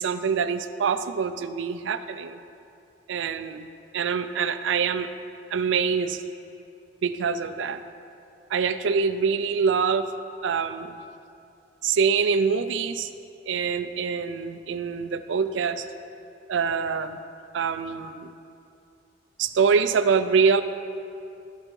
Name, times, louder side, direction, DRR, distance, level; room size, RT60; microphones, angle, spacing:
voice 1, 0.0-2.4 3.1-3.7 3.9-5.1 5.5-6.2 7.0-7.8 8.5-10.1 10.4-11.0 11.8-13.1 13.5-15.9 16.5-17.2 17.5-18.3 19.4-20.6, right 6 dB, 70° right, 11 dB, 0.4 m, -25 dB
12.0 x 4.5 x 5.2 m, 2.6 s
head